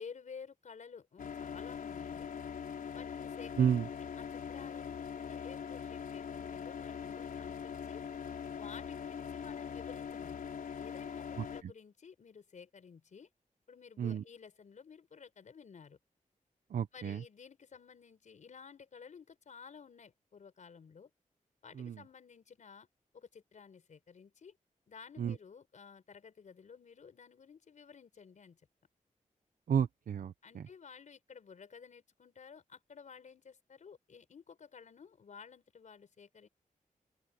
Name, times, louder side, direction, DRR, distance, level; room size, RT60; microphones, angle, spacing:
voice 1, 0.0-2.3 2.9-8.0 8.6-10.5 10.8-13.3 13.7-16.0 16.9-21.1 21.6-22.9 23.1-24.6 24.9-28.6 30.4-36.5, left 6 dB, 60° left, 4.9 m, -53 dB
sound 1, 1.2-11.6, left 7 dB, 90° left, 4.2 m, -42 dB
voice 2, 16.7-17.2 21.8-22.0 25.2-25.3 29.7-30.6, right 8 dB, 80° right, 0.8 m, -31 dB
open air
wide cardioid pair, 150°, 14 cm